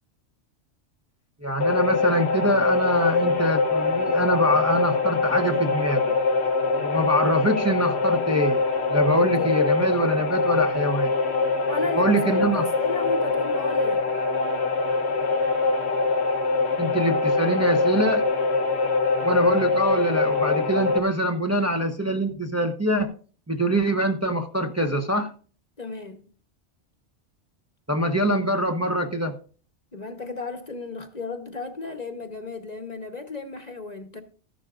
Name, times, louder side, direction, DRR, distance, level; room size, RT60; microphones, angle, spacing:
voice 1, 1.4-6.1 6.8-8.6 8.9-11.1 11.9-12.6 16.8-18.2 19.2-23.1 23.5-25.3 27.9-29.3, right 1 dB, 15° right, 0.9 m, -24 dB
sound 1, 1.6-21.0, left 3 dB, 65° left, 1.3 m, -23 dB
voice 2, 9.2-9.5 11.7-14.0 25.8-26.2 29.9-34.2, left 3 dB, 35° left, 1.1 m, -34 dB
14.5 x 11.5 x 2.5 m
omnidirectional pair, 1.2 m